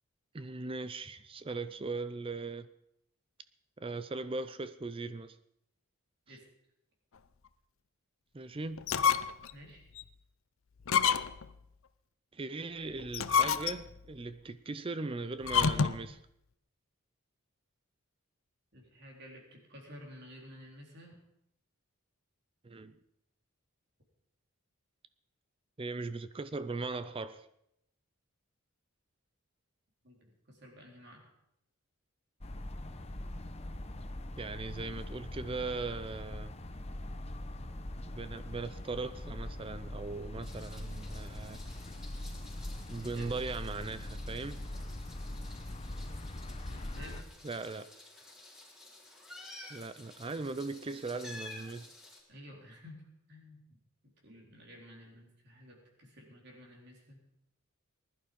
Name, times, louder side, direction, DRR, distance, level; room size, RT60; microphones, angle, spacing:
voice 1, 0.3-2.7 3.8-5.4 6.3-6.4 8.3-8.9 12.3-16.2 22.6-23.0 25.8-27.5 34.4-36.5 38.1-41.6 42.9-44.6 47.4-47.9 49.7-51.9, right 3 dB, 25° right, 0.5 m, -39 dB
sound 1, 8.8-9.5 10.0-10.1 10.8-11.5 13.0-14.0 15.4-16.1, left 7 dB, 65° left, 0.6 m, -28 dB
voice 2, 9.5-9.8 18.7-21.1 30.0-31.3 43.0-43.3 46.7-47.3 52.3-53.8 54.2-57.2, equal, 50° right, 4.1 m, -52 dB
sound 2, 32.4-47.2, left 1 dB, 30° left, 0.8 m, -42 dB
Meow, 40.4-52.2, left 2 dB, 5° right, 3.9 m, -52 dB
20.0 x 11.5 x 5.3 m
head